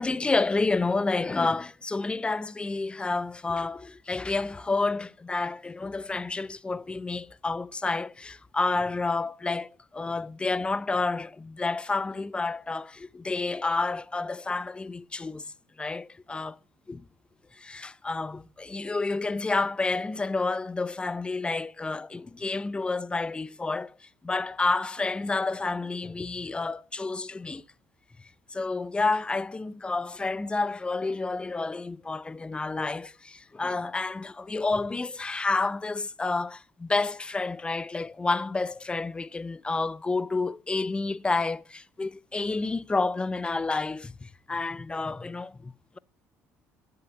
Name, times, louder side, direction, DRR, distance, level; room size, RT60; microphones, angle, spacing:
voice 1, 0.0-15.4 15.8-16.6 16.9-17.0 17.6-23.9 24.2-27.6 28.5-46.0, left 3 dB, 15° left, 0.5 m, -29 dB
11.0 x 6.7 x 7.9 m
supercardioid pair, 85°, 6 cm